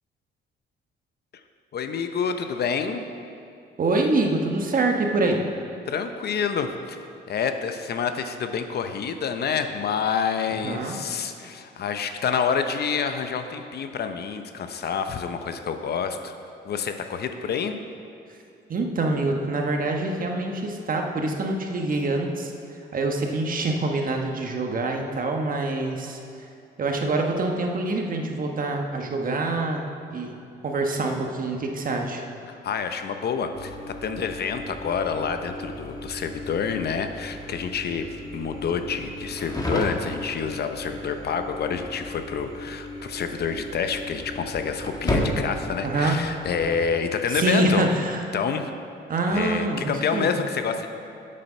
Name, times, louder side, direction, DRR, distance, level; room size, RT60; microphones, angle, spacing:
voice 1, 1.7-3.0 5.9-7.0 7.3-16.3 16.6-17.7 32.5-38.1 38.3-47.8 48.3-48.7 49.3-50.9, left 6 dB, 55° left, 7 dB, 0.7 m, -28 dB
voice 2, 3.8-5.4 10.5-11.0 18.7-22.5 22.9-26.2 26.8-29.8 30.1-30.3 30.6-32.2 45.8-46.1 47.3-48.2 49.1-50.3, right 2 dB, 45° right, 2 dB, 1.2 m, -25 dB
sound 1, 33.5-46.8, left 1 dB, 20° left, 1.3 m, -34 dB
7.7 x 7.6 x 5.6 m, 2.7 s
cardioid pair, 90°, 20 cm